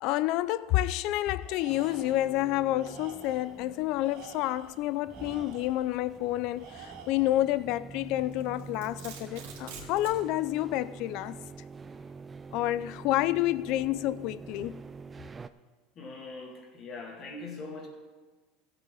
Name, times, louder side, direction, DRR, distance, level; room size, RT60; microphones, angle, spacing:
voice 1, 0.0-11.4 12.5-14.8, left 15 dB, 60° left, 0.4 m, -29 dB
Tools, 1.4-2.3 2.8-3.6 4.0-5.9 6.6-7.5, right 7 dB, 70° right, 1.5 m, -49 dB
sound 1, 1.7-15.5, right 5 dB, 20° right, 0.4 m, -46 dB
Domestic sounds home sounds, 8.3-10.2, right 5 dB, 85° right, 2.5 m, -45 dB
voice 2, 16.0-17.9, left 3 dB, 35° left, 2.2 m, -41 dB
15.5 x 8.1 x 3.8 m
supercardioid pair, 130°, 0 cm